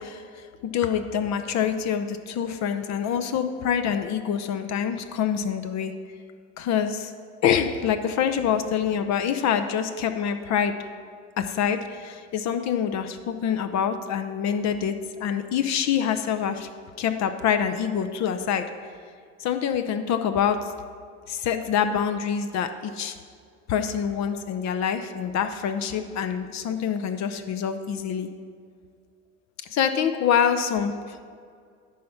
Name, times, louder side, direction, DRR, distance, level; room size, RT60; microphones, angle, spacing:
voice 1, 0.0-5.9 6.6-7.1 7.4-10.7 11.4-16.7 17.0-18.7 19.4-20.7 21.3-23.1 23.7-28.3 29.7-31.2, left 8 dB, 45° left, 8 dB, 0.6 m, -26 dB
11.0 x 4.2 x 5.7 m, 2.1 s
hypercardioid pair, 60°, 38 cm